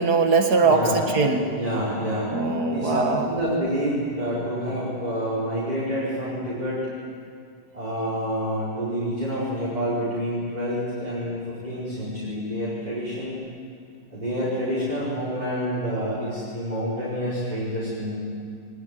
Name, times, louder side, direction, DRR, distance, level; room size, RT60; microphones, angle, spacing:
voice 1, 0.0-1.5 2.3-3.3, right 3 dB, 65° right, 4 dB, 2.2 m, -21 dB
voice 2, 0.6-1.0 1.5-2.4 2.7-6.8 7.7-13.4 14.1-18.2, equal, 20° right, -8 dB, 5.0 m, -28 dB
23.0 x 20.0 x 9.3 m, 2.3 s
omnidirectional pair, 1.9 m